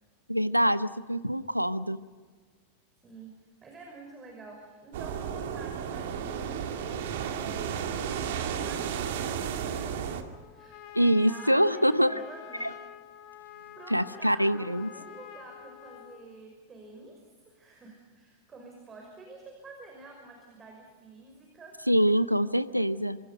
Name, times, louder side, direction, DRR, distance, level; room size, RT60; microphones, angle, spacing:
voice 1, 0.3-2.0 10.9-12.1 12.6-12.7 13.9-14.9 21.9-23.2, equal, 90° right, 15 dB, 0.8 m, -24 dB
voice 2, 3.0-7.9 8.3-10.1 10.5-12.8 13.7-21.7, right 3 dB, 20° right, 2 dB, 5.6 m, -49 dB
sound 1, 4.9-10.2, right 8 dB, 55° right, 2.2 m, -33 dB
Trumpet, 10.3-16.3, left 11 dB, 40° left, 2.3 m, -47 dB
26.0 x 25.5 x 5.5 m, 1.5 s
figure-of-eight pair, 90°, 0 cm